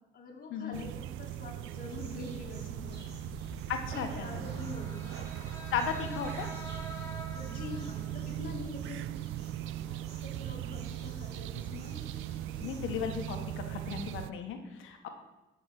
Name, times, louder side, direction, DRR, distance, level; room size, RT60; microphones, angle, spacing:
voice 1, 0.1-3.0 3.9-5.2 7.3-9.1 9.5-12.0 12.4-12.7 14.3-15.1, left 3 dB, 45° left, -1 dB, 2.7 m, -45 dB
sound 1, 0.7-14.3, right 13 dB, 80° right, 0.4 m, -39 dB
sound 2, 1.8-13.0, right 1 dB, 55° right, 2.9 m, -51 dB
voice 2, 3.7-4.3 5.7-6.5 12.6-15.1, left 7 dB, 85° left, 5 dB, 1.6 m, -35 dB
sound 3, 3.9-13.3, equal, 15° left, 3.2 m, -50 dB
12.5 x 6.5 x 6.1 m, 1.0 s
cardioid pair, 90°, 20 cm